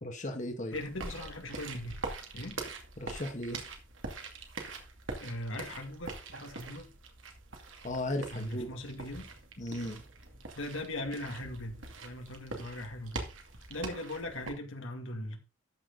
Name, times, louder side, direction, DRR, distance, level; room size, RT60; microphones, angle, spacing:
voice 1, 0.0-0.7 3.0-3.6 7.8-8.7 9.6-10.0, left 1 dB, 40° left, 1.6 m, -36 dB
voice 2, 0.7-2.0 2.3-2.6 5.2-6.9 8.3-9.3 10.6-13.3 13.7-15.4, left 1 dB, 80° left, 2.3 m, -39 dB
sound 1, 0.7-14.5, right 3 dB, 80° right, 2.4 m, -43 dB
13.0 x 6.1 x 3.9 m
head